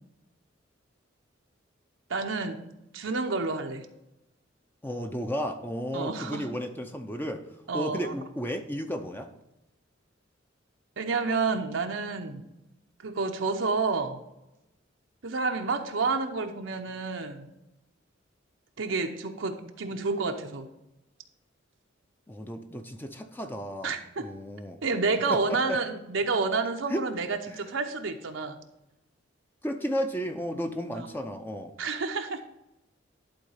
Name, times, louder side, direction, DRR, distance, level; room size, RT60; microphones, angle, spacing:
voice 1, 2.1-2.6 2.9-3.9 5.9-6.5 7.7-8.1 11.0-12.4 13.0-14.2 15.2-17.5 18.8-20.7 23.8-24.3 24.8-28.6 30.9-31.2 31.8-32.4, right 4 dB, 80° right, 4 dB, 0.7 m, -29 dB
voice 2, 4.8-7.4 7.7-9.3 22.3-24.8 25.3-25.8 26.9-27.0 27.5-27.6 29.6-31.7, equal, 10° left, 5 dB, 0.6 m, -33 dB
11.5 x 3.9 x 5.6 m, 0.91 s
head